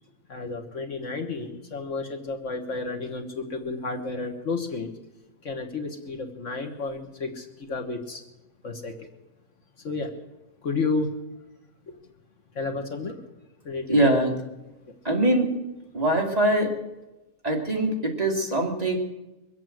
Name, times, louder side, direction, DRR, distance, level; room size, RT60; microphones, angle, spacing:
voice 1, 0.3-4.9 5.4-8.2 8.6-9.1 9.8-10.1 10.6-11.1 11.9-12.0 12.5-13.2 13.6-14.2, left 3 dB, 60° left, 4 dB, 1.7 m, -31 dB
voice 2, 13.9-14.4 15.0-15.5 15.9-16.7 17.4-19.0, right 1 dB, 25° right, 0 dB, 2.5 m, -22 dB
23.0 x 8.3 x 7.6 m, 1.0 s
omnidirectional pair, 1.5 m